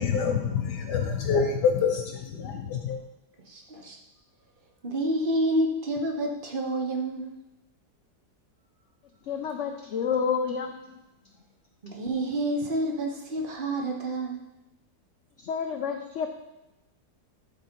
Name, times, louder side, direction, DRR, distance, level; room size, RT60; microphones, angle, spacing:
voice 1, 0.0-3.0, left 6 dB, 80° left, 1 dB, 1.4 m, -26 dB
voice 2, 3.5-4.0 4.8-7.4 11.8-14.4, right 1 dB, 35° right, 1 dB, 1.2 m, -28 dB
voice 3, 9.3-10.8 15.4-16.3, left 6 dB, 65° left, 4 dB, 0.8 m, -29 dB
11.5 x 4.2 x 4.4 m, 0.95 s
omnidirectional pair, 1.8 m